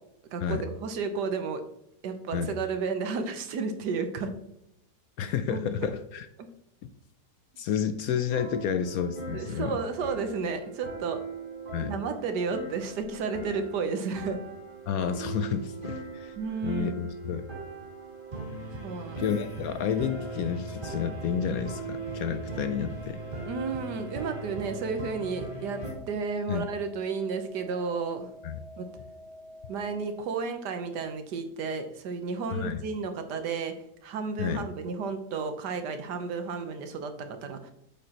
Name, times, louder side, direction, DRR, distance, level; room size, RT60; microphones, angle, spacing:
voice 1, 0.3-1.6 2.0-4.3 5.5-5.9 6.4-6.5 9.3-11.2 11.8-14.4 16.4-17.0 18.8-19.3 23.4-28.3 28.8-28.9 29.7-33.7 34.0-37.7, right 5 dB, 80° right, 8 dB, 1.5 m, -32 dB
voice 2, 5.2-6.3 6.8-6.9 7.6-9.8 11.7-11.9 14.9-16.3 16.6-17.5 19.2-23.2 26.5-26.6 28.4-28.6 32.5-32.8 34.4-34.6, left 7 dB, 70° left, 10 dB, 0.9 m, -30 dB
sound 1, 8.2-25.9, right 3 dB, 30° right, 2.3 m, -40 dB
sound 2, 13.1-21.3, right 1 dB, 30° left, 2.2 m, -61 dB
sound 3, 19.8-30.2, left 1 dB, 60° right, 2.1 m, -48 dB
8.4 x 7.3 x 2.9 m, 0.80 s
omnidirectional pair, 1.8 m